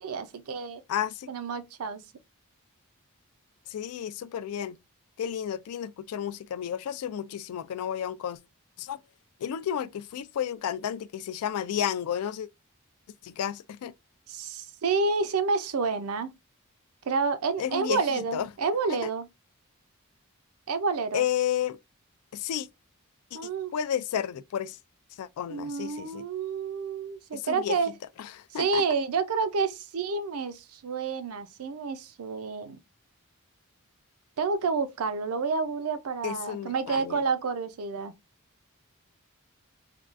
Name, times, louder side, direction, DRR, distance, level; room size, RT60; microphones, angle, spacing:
voice 1, 0.0-0.8 1.3-2.0 14.3-16.3 17.1-19.3 20.7-21.2 23.3-23.7 25.5-27.9 28.6-32.8 34.4-38.1, right 4 dB, 75° right, 0.5 m, -29 dB
voice 2, 0.9-1.3 3.7-4.8 5.2-8.4 8.8-9.0 9.4-12.5 13.2-13.9 17.6-18.5 18.9-19.1 21.1-21.8 22.3-22.7 23.3-23.4 23.7-24.8 25.2-26.3 27.3-27.8 28.2-28.8 36.2-37.2, left 9 dB, 85° left, 0.3 m, -32 dB
3.5 x 2.3 x 2.4 m
head